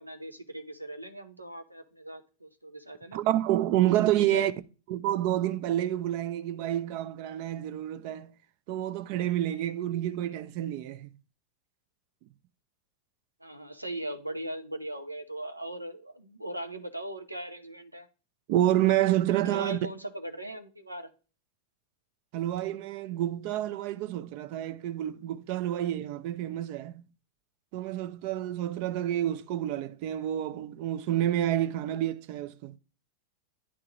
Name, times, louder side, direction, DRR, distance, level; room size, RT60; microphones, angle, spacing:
voice 1, 0.0-3.2 4.1-4.5 13.4-18.1 19.4-21.1, right 1 dB, 85° right, 0.8 m, -39 dB
voice 2, 3.1-4.5 4.9-8.4 8.7-11.1 18.5-19.8 22.3-27.0 27.7-32.7, right 12 dB, 45° right, 0.5 m, -28 dB
9.8 x 3.6 x 2.9 m
figure-of-eight pair, 90°, 0 cm